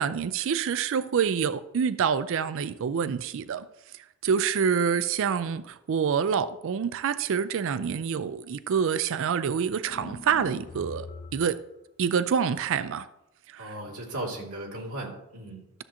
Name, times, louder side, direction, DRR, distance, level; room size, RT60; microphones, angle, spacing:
voice 1, 0.0-3.7 3.9-11.1 11.3-11.6 12.0-13.1 13.5-13.7, right 7 dB, 60° right, 0.4 m, -27 dB
sound 1, 9.8-11.6, left 3 dB, 35° left, 0.4 m, -42 dB
voice 2, 13.6-15.6, right 1 dB, 90° right, 2.6 m, -36 dB
13.0 x 7.4 x 2.9 m
head